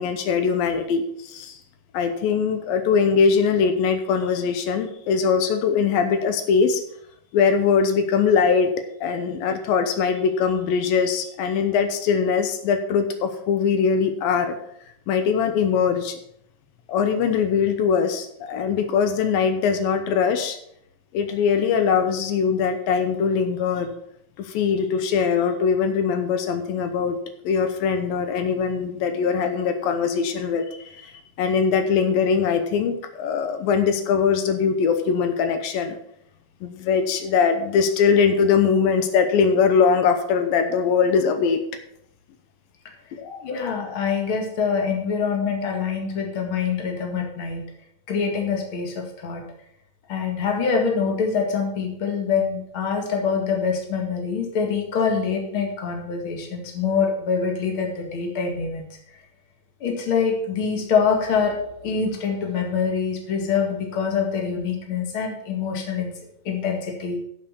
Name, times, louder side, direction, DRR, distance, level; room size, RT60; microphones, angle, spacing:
voice 1, 0.0-1.6 1.9-6.8 7.3-8.8 9.0-14.6 15.1-16.2 16.9-20.6 21.1-23.9 24.4-27.2 27.4-36.0 36.6-41.6 43.1-43.5, left 6 dB, 85° left, 7 dB, 2.7 m, -21 dB
voice 2, 43.4-47.6 48.1-49.4 50.1-59.0 59.8-66.1 66.4-67.2, left 6 dB, 45° left, 2 dB, 2.3 m, -25 dB
8.1 x 7.8 x 6.9 m, 0.73 s
omnidirectional pair, 4.0 m